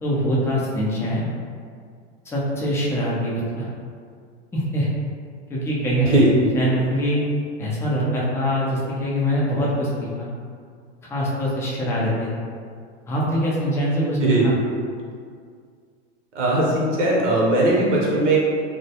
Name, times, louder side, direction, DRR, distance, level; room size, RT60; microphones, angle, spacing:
voice 1, 0.0-1.3 2.3-3.7 4.5-4.9 5.5-7.2 7.6-10.3 11.1-12.3 13.1-14.2 14.4-14.6, equal, 10° left, -6 dB, 0.3 m, -23 dB
voice 2, 16.3-18.4, right 2 dB, 85° right, -4 dB, 0.8 m, -19 dB
2.2 x 2.1 x 2.7 m, 2.1 s
hypercardioid pair, 105°, 35 cm